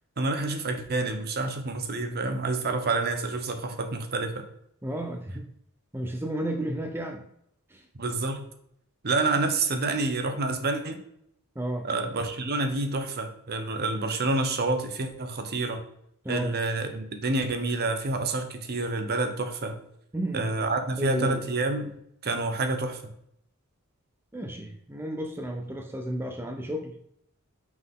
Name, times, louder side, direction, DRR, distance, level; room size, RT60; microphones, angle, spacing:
voice 1, 0.2-4.5 8.0-8.4 9.0-11.0 11.8-15.8 16.3-19.7 20.3-21.9 22.2-23.0, right 3 dB, 45° right, 7 dB, 0.8 m, -28 dB
voice 2, 4.8-5.5 5.9-7.2 7.7-7.9 11.6-11.9 16.2-16.5 20.1-20.5 21.0-21.4 24.3-26.9, right 1 dB, 10° right, 4 dB, 0.5 m, -32 dB
6.0 x 5.6 x 3.7 m, 0.72 s
head